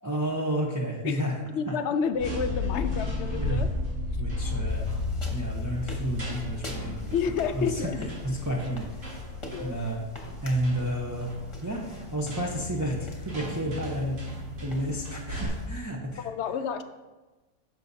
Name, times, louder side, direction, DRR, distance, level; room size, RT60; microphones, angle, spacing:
voice 1, 0.0-1.4 1.7-1.8 3.3-3.6 4.2-4.9 5.3-9.2 9.6-10.0 10.4-11.3 11.6-16.3, right 1 dB, 15° right, -2 dB, 0.7 m, -31 dB
voice 2, 1.5-3.7 4.6-4.9 7.1-8.0 9.5-9.8 16.2-16.8, left 6 dB, 65° left, 9 dB, 0.8 m, -30 dB
sound 1, 2.1-15.5, left 2 dB, 80° right, 2.5 m, -34 dB
sound 2, 4.7-15.7, left 1 dB, 25° left, 1.1 m, -46 dB
10.5 x 6.9 x 2.7 m, 1.2 s
omnidirectional pair, 1.3 m